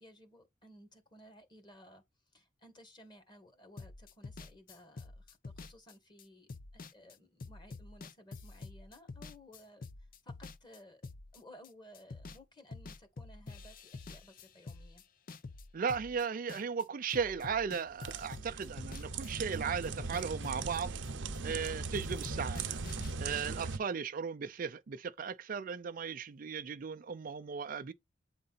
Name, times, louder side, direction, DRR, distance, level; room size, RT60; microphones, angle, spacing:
voice 1, 0.0-2.0 2.3-9.8 10.2-11.0 11.3-15.0, equal, 25° left, 1.7 m, -57 dB
sound 1, 3.8-12.4 12.7-16.8 17.1-21.7 21.9-23.1, left 3 dB, 50° left, 0.6 m, -48 dB
voice 2, 15.7-20.9 21.4-22.8 23.2-27.9, right 6 dB, 45° right, 0.4 m, -36 dB
sound 2, 17.9-23.8, right 4 dB, 80° right, 0.8 m, -39 dB
8.6 x 3.8 x 4.1 m
head